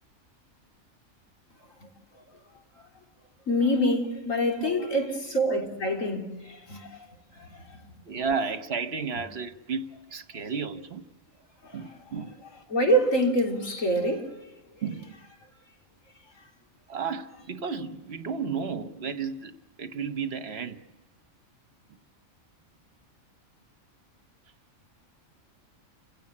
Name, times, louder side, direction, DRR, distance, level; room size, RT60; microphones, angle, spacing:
voice 1, 3.5-7.1 7.3-7.8 10.3-10.4 11.6-12.0 12.7-14.3, equal, 70° left, 3.7 m, -26 dB
voice 2, 8.1-11.0 11.7-12.3 14.8-15.1 16.9-19.5 19.8-20.8, right 5 dB, 50° right, 1.3 m, -33 dB
29.5 x 16.5 x 8.5 m
omnidirectional pair, 1.4 m